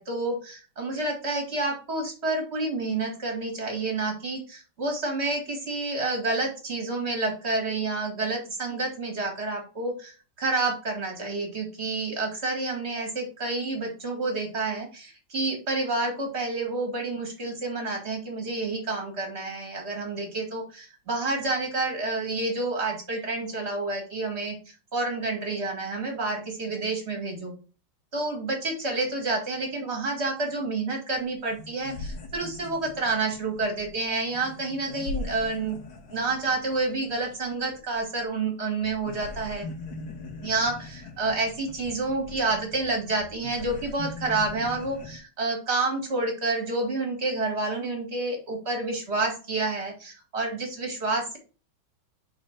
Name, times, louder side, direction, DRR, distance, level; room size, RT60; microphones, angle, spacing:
voice 1, 0.0-24.5 24.9-27.5 28.1-35.8 36.1-39.7 40.4-51.4, right 3 dB, 30° right, 2 dB, 2.1 m, -29 dB
sound 1, 31.2-31.3 31.5-38.5 38.8-45.2, left 3 dB, 60° left, 1.5 m, -41 dB
5.4 x 4.0 x 5.8 m, 0.35 s
omnidirectional pair, 2.2 m